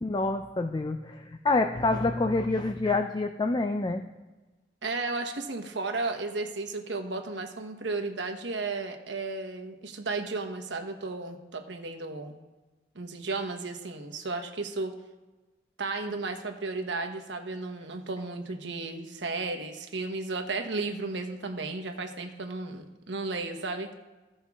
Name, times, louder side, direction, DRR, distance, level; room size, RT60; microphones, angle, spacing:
voice 1, 0.0-4.0, left 3 dB, 25° left, 7 dB, 0.4 m, -27 dB
voice 2, 4.8-12.4 12.9-14.9 15.8-23.9, right 3 dB, 80° right, 5 dB, 1.1 m, -34 dB
16.5 x 5.5 x 3.6 m, 1.2 s
head